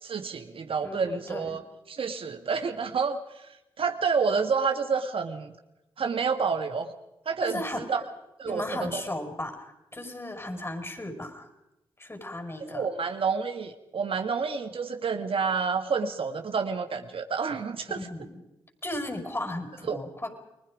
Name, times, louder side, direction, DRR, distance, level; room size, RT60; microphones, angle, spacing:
voice 1, 0.0-1.6 1.9-5.5 6.0-6.9 7.2-8.0 8.4-9.0 12.7-18.1 19.9-20.0, right 5 dB, 65° right, 7 dB, 1.7 m, -29 dB
voice 2, 0.8-1.5 7.4-7.8 8.4-11.5 12.0-12.8 18.0-18.3 18.8-20.4, left 1 dB, 25° left, 6 dB, 5.6 m, -35 dB
30.0 x 20.5 x 5.1 m, 0.93 s
supercardioid pair, 40°, 10 cm